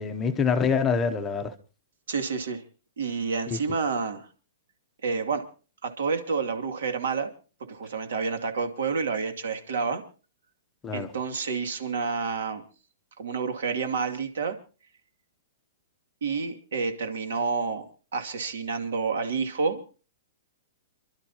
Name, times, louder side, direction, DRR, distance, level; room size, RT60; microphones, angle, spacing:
voice 1, 0.0-1.5 3.5-3.6 10.8-11.1, left 6 dB, 10° left, 0.8 m, -25 dB
voice 2, 2.1-2.6 3.0-4.3 5.0-5.4 5.8-7.3 7.7-10.0 10.9-12.6 13.2-14.6 16.2-17.8 18.1-19.8, right 5 dB, 70° right, 2.6 m, -29 dB
29.0 x 12.0 x 2.9 m
hypercardioid pair, 175°, 0 cm